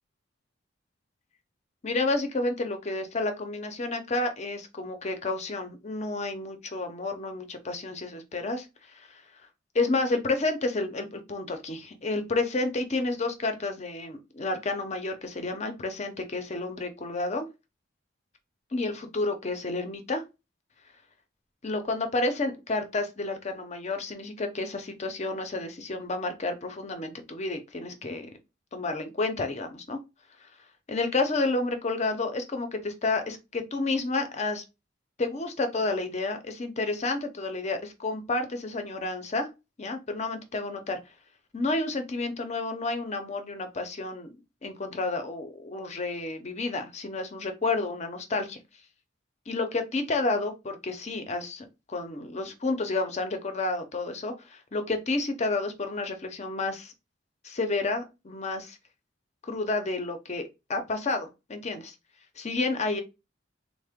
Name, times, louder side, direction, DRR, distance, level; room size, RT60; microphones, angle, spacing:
voice 1, 1.8-8.7 8.9-9.2 9.7-17.5 18.7-20.2 21.6-28.3 28.7-30.0 30.9-34.6 35.2-39.5 39.8-41.0 41.5-44.3 44.6-48.6 49.5-56.9 57.4-58.8 59.4-61.9 62.4-63.0, left 3 dB, 35° left, 0.6 m, -30 dB
3.7 x 2.1 x 3.5 m
head